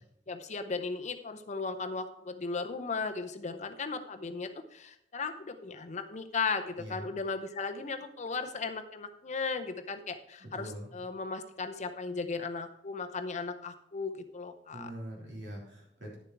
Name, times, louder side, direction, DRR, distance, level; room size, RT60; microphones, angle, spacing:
voice 1, 0.3-14.9, left 4 dB, 40° left, 8 dB, 0.7 m, -36 dB
voice 2, 10.4-10.9 14.7-16.2, right 1 dB, 70° right, -2 dB, 3.3 m, -43 dB
10.5 x 7.1 x 4.6 m, 0.76 s
head